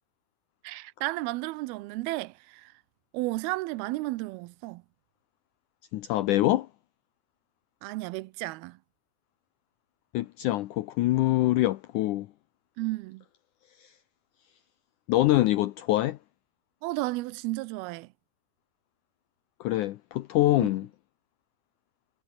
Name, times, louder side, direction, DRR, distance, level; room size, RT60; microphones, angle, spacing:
voice 1, 0.6-2.7 3.1-4.8 7.8-8.8 12.8-13.2 16.8-18.1 20.6-20.7, right 20 dB, 85° right, 2.5 m, -33 dB
voice 2, 5.9-6.7 10.1-12.3 13.8-13.9 15.1-16.2 19.6-20.9, left 16 dB, 80° left, 1.8 m, -25 dB
omnidirectional pair, 4.4 m